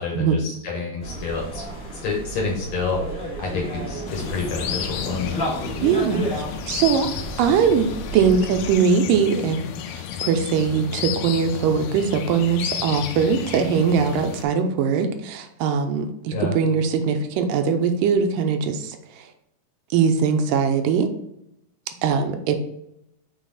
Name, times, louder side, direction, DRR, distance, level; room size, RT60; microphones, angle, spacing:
voice 1, 0.0-1.6 2.0-3.0 3.4-5.3 16.3-16.6, left 4 dB, 60° left, -1 dB, 2.4 m, -28 dB
sound 1, 1.0-8.7, right 1 dB, 20° left, 1.5 m, -32 dB
sound 2, 4.1-14.5, left 9 dB, 85° left, 2.3 m, -32 dB
voice 2, 5.8-7.1 7.4-7.9 8.1-9.6 9.9-19.0 19.9-21.1 22.0-22.6, right 6 dB, 85° right, 6 dB, 2.3 m, -21 dB
6.4 x 4.1 x 4.0 m, 0.80 s
omnidirectional pair, 3.9 m